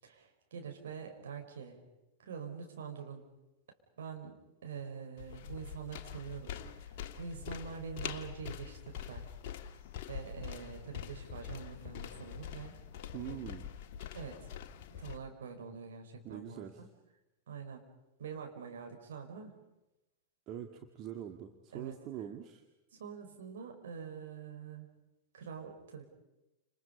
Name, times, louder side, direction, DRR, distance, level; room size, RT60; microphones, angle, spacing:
voice 1, 0.0-1.8 2.2-3.3 4.0-4.4 4.6-9.3 10.1-12.7 14.1-14.5 14.9-16.9 17.5-17.9 18.2-19.5 21.7-22.0 22.9-24.9 25.3-26.0, right 6 dB, 65° right, 3 dB, 5.3 m, -45 dB
sound 1, 5.2-15.2, left 9 dB, 50° left, 1.7 m, -44 dB
voice 2, 13.1-13.7 16.2-16.8 20.5-22.6, right 10 dB, 35° right, 5 dB, 1.9 m, -43 dB
30.0 x 28.5 x 5.5 m, 0.97 s
figure-of-eight pair, 90°, 0 cm